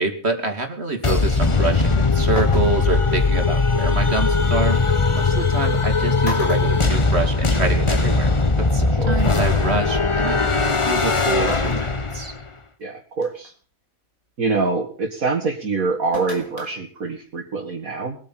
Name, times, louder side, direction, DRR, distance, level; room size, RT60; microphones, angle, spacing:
voice 1, 0.0-4.8 5.2-8.3 8.6-12.3, right 3 dB, 50° right, 6 dB, 2.8 m, -26 dB
sound 1, 1.0-12.4, left 3 dB, 25° left, 1.0 m, -19 dB
sound 2, 2.4-3.0 4.6-4.7 5.7-5.9 6.2-7.6 8.0-8.1 9.3-9.4 11.5-12.0 12.5-12.6 13.2-13.5 16.1-16.7 17.1-17.2, left 2 dB, 85° left, 4.0 m, -34 dB
voice 2, 5.3-5.8 8.9-9.2 12.8-13.5 14.4-18.2, right 4 dB, 80° right, 0 dB, 2.4 m, -25 dB
22.0 x 9.1 x 5.7 m, 0.42 s
omnidirectional pair, 1.4 m